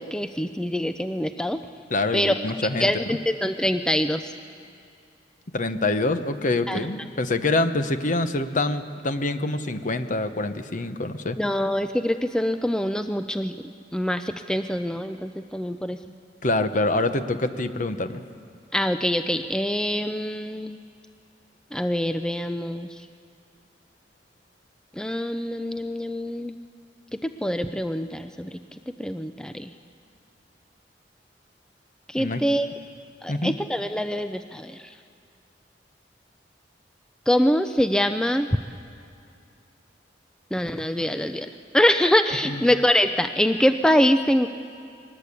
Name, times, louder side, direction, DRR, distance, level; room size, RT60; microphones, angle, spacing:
voice 1, 0.0-1.6 2.1-2.3 2.8-4.3 6.7-6.8 11.4-13.6 13.9-16.0 18.7-20.8 21.7-22.9 25.0-26.5 27.2-28.6 29.0-29.7 32.1-32.7 33.2-34.8 37.3-38.5 40.5-41.5 41.7-44.5, equal, 5° left, 8 dB, 0.5 m, -24 dB
voice 2, 1.9-3.2 5.5-11.4 16.4-18.2 32.1-32.4 33.3-33.6 42.4-42.6, left 2 dB, 45° left, 10 dB, 1.0 m, -25 dB
22.5 x 19.5 x 8.4 m, 2.5 s
head